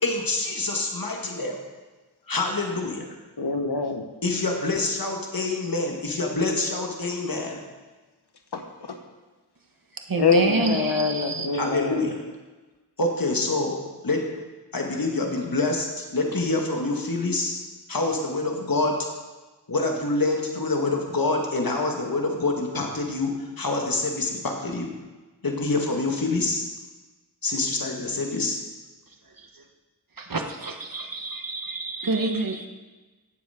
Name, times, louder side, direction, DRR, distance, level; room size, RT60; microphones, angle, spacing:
voice 1, 0.0-1.6 2.3-3.1 4.2-7.6 11.5-12.2 13.0-14.3 14.7-17.6 17.9-19.1 19.7-24.9 25.4-26.7 27.4-28.6, left 2 dB, 60° left, 1 dB, 2.0 m, -26 dB
voice 2, 3.4-4.0 8.5-9.0 10.2-12.1, left 4 dB, 80° left, 5 dB, 1.4 m, -25 dB
voice 3, 10.0-11.5 29.1-29.6 30.2-32.7, right 3 dB, 60° right, 5 dB, 1.4 m, -28 dB
17.0 x 7.2 x 5.1 m, 1.2 s
wide cardioid pair, 50°, 39 cm